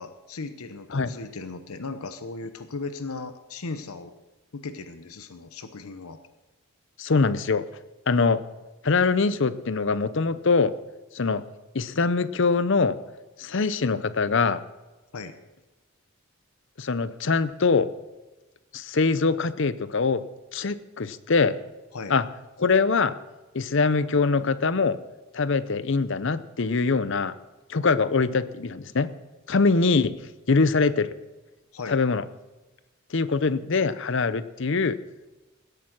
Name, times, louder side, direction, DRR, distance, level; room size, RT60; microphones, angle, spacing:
voice 1, 0.0-4.1 4.5-6.2 15.1-15.3 21.9-22.1 30.6-30.7 31.7-32.0, left 3 dB, 80° left, 10 dB, 0.9 m, -37 dB
voice 2, 7.0-7.6 8.1-8.4 8.8-10.7 11.1-11.4 11.7-13.0 13.4-14.6 16.8-17.9 18.7-20.2 20.5-21.5 22.1-22.2 22.6-23.1 23.5-25.0 25.3-27.3 27.7-29.1 29.5-30.1 30.5-31.1 31.9-32.2 33.1-35.0, left 4 dB, 55° left, 15 dB, 0.6 m, -23 dB
17.0 x 8.5 x 6.1 m, 1.1 s
head